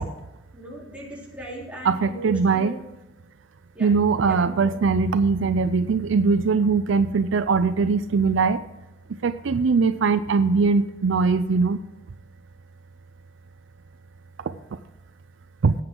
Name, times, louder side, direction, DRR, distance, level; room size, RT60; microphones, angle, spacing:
voice 1, 0.5-2.8 3.7-3.9 4.2-4.6, right 1 dB, 5° right, -5 dB, 3.7 m, -38 dB
voice 2, 1.8-2.7 3.8-8.6 9.2-11.8 15.6-15.8, right 4 dB, 70° right, 12 dB, 0.5 m, -21 dB
16.5 x 8.0 x 3.8 m, 0.99 s
head